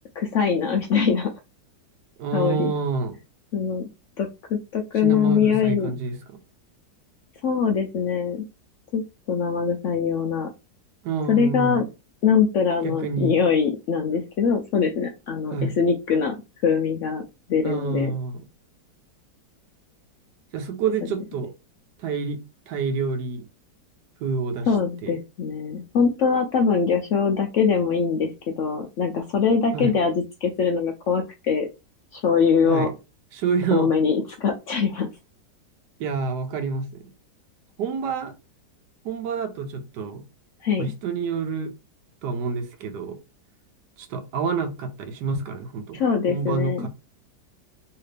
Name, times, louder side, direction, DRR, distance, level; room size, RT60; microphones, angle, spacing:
voice 1, 0.2-1.3 2.3-2.7 3.5-3.9 4.2-5.9 7.4-8.4 8.9-9.0 9.3-10.5 11.3-11.8 12.2-16.3 16.6-17.2 17.5-18.1 24.7-30.1 30.4-31.7 32.1-32.9 33.7-35.1 40.6-40.9 45.9-46.9, left 6 dB, 85° left, 0.6 m, -22 dB
voice 2, 2.2-3.2 5.0-6.2 11.0-11.9 12.8-13.4 15.5-15.7 17.6-18.4 20.5-21.5 22.0-22.4 22.7-23.4 24.2-24.7 25.0-25.2 29.7-29.9 32.6-32.9 33.3-33.9 36.0-37.1 37.8-38.3 39.0-40.2 40.8-41.7 42.2-43.2 44.0-46.0 46.3-46.9, right 5 dB, 75° right, 1.4 m, -28 dB
3.2 x 2.9 x 3.2 m
omnidirectional pair, 1.9 m